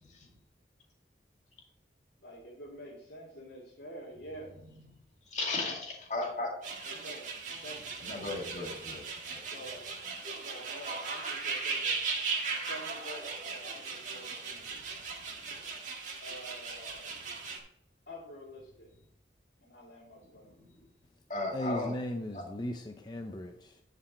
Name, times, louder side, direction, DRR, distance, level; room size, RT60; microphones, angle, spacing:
voice 1, 2.2-4.6 6.2-6.4 6.8-7.8 9.4-9.9 10.4-12.0 12.6-14.9 16.2-17.2 18.1-18.9 19.6-20.5, equal, 75° left, -6 dB, 2.4 m, -48 dB
voice 2, 5.3-6.5 8.0-9.0 9.3-9.4 15.4-15.5 20.6-20.7 21.3-21.9, left 2 dB, 40° left, -1 dB, 2.1 m, -35 dB
sound 1, 6.6-17.6, right 4 dB, 45° right, 1.5 m, -38 dB
voice 3, 21.5-23.8, left 1 dB, 25° left, 4 dB, 0.5 m, -37 dB
10.0 x 5.2 x 4.2 m, 0.73 s
head